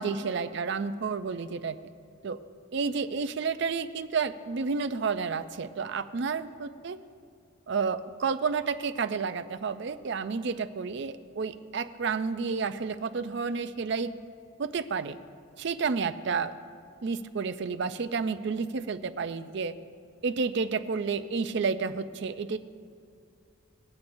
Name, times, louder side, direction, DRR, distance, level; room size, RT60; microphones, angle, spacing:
voice 1, 0.0-1.8 2.2-2.4 2.7-7.0 7.7-14.1 14.6-15.2 15.6-16.5 17.0-19.7 20.2-22.6, right 5 dB, 55° right, 11 dB, 0.4 m, -30 dB
21.5 x 8.3 x 2.6 m, 2.3 s
head